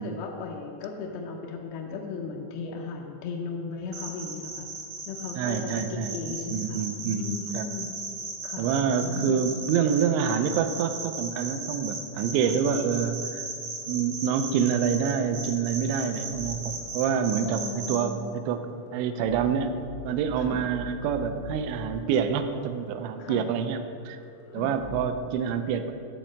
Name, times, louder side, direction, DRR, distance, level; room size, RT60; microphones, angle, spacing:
voice 1, 0.0-4.7 5.1-7.9 8.4-8.7 9.0-9.4 12.4-12.6 17.4-18.2 20.4-20.6 23.2-23.5 24.6-24.7, left 4 dB, 85° left, 0 dB, 2.1 m, -36 dB
sound 1, 3.9-18.0, right 3 dB, 70° right, 1.6 m, -36 dB
voice 2, 5.4-6.2 6.5-7.7 8.6-13.5 13.9-17.6 17.9-18.2 18.5-19.8 20.0-23.8 24.1-24.2 24.5-25.9, right 7 dB, 85° right, 9 dB, 2.8 m, -27 dB
sound 2, 13.8-13.9 14.3-14.8 15.0-15.2 15.5-16.9 17.2-17.7 18.0-18.1 18.4-22.0 22.3-22.4 22.7-23.2 23.5-23.6 23.9-25.2, left 3 dB, 70° left, 1.1 m, -44 dB
10.0 x 4.3 x 7.3 m, 2.5 s
omnidirectional pair, 5.2 m